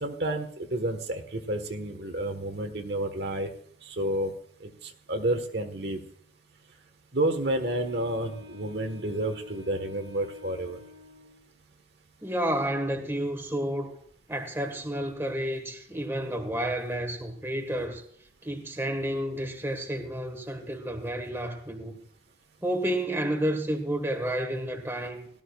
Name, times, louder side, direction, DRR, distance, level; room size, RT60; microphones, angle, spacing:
voice 1, 0.0-3.5 3.8-4.3 4.6-6.0 7.1-10.8, right 1 dB, 65° right, 1.4 m, -30 dB
Wind instrument woodwind instrument, 7.4-11.5, left 3 dB, 85° right, 3.4 m, -48 dB
voice 2, 12.2-14.0 14.3-18.0 18.4-22.0 22.6-25.3, right 1 dB, 15° right, 1.5 m, -30 dB
17.5 x 12.5 x 2.4 m
head